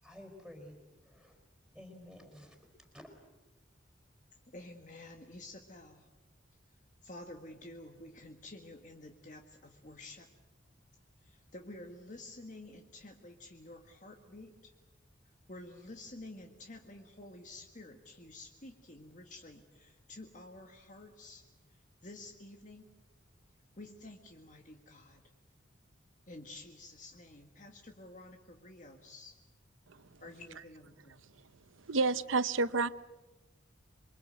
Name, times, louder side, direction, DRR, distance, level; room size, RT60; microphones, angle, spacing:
voice 1, 0.0-1.4 1.7-2.6 2.9-3.1, left 1 dB, ahead, 2 dB, 4.5 m, -52 dB
voice 2, 4.5-6.1 7.0-10.3 11.2-14.7 15.5-21.4 22.0-22.8 23.8-25.2 26.3-29.3 30.2-31.2, left 2 dB, 40° left, 4 dB, 1.7 m, -50 dB
voice 3, 31.9-32.9, right 3 dB, 85° right, 15 dB, 0.8 m, -29 dB
27.5 x 23.0 x 8.1 m, 1.1 s
head